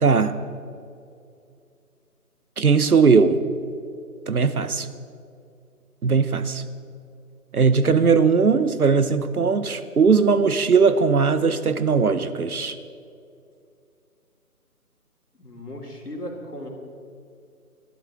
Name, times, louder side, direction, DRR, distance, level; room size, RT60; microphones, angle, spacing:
voice 1, 0.0-0.4 2.6-3.4 4.3-4.9 6.0-6.6 7.5-12.8, right 5 dB, 70° right, 13 dB, 1.0 m, -19 dB
voice 2, 15.4-16.7, left 1 dB, 90° left, 0 dB, 3.2 m, -36 dB
19.0 x 12.5 x 3.7 m, 2.5 s
figure-of-eight pair, 155°, 45 cm